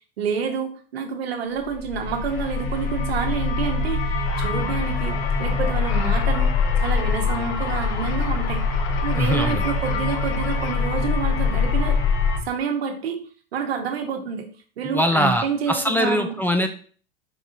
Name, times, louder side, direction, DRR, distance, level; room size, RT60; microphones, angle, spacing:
voice 1, 0.2-6.5 6.8-8.6 9.0-12.0 12.4-13.2 13.5-14.5 14.8-16.4, right 6 dB, 80° right, 4 dB, 1.0 m, -28 dB
sound 1, 1.7-12.4, left 4 dB, 50° left, 1.4 m, -23 dB
sound 2, 4.2-10.9, left 7 dB, 65° left, 0.8 m, -36 dB
voice 2, 9.2-9.6 14.8-16.7, left 1 dB, 5° left, 6 dB, 0.4 m, -22 dB
4.8 x 3.6 x 2.7 m, 0.43 s
hypercardioid pair, 90°, 30 cm